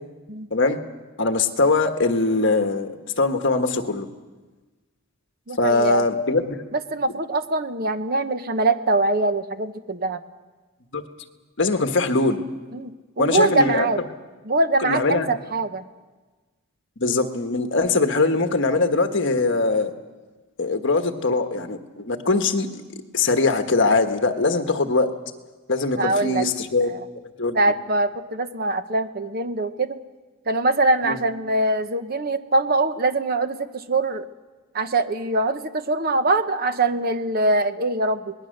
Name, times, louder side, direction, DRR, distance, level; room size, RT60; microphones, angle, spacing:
voice 1, 1.2-4.1 5.6-6.6 10.9-11.0 11.6-12.4 13.2-13.9 14.8-15.3 17.0-19.9 20.6-22.8 23.1-25.1 25.7-26.9 27.4-27.6 31.0-31.2, left 3 dB, 60° left, 6 dB, 1.5 m, -21 dB
voice 2, 5.5-6.0 6.7-10.2 12.7-14.0 14.4-15.8 26.0-26.5 26.9-27.0 27.5-30.0 30.5-34.3 34.7-38.3, right 2 dB, 45° right, 10 dB, 1.0 m, -23 dB
26.0 x 20.0 x 6.6 m, 1.3 s
head